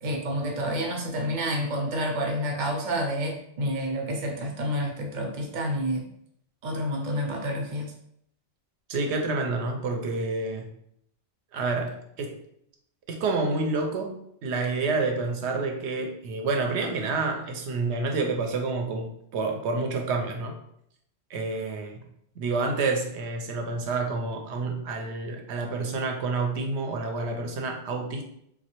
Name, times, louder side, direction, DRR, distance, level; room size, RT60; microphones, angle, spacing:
voice 1, 0.0-6.1 6.6-7.9, equal, 50° right, 1 dB, 0.7 m, -29 dB
voice 2, 8.9-10.7 11.5-12.4 13.1-20.5 21.3-22.0 22.4-28.2, right 3 dB, 80° right, 3 dB, 0.9 m, -28 dB
3.1 x 2.3 x 2.9 m, 0.72 s
omnidirectional pair, 1.1 m